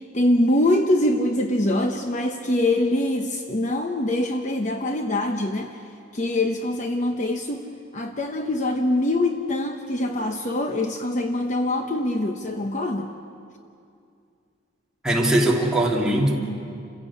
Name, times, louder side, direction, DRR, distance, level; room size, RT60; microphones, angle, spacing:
voice 1, 0.0-5.7 6.1-7.7 7.9-13.1, left 1 dB, 40° left, 5 dB, 0.9 m, -24 dB
voice 2, 15.0-16.3, right 1 dB, 5° right, -3 dB, 2.7 m, -20 dB
28.0 x 16.0 x 8.5 m, 2.4 s
head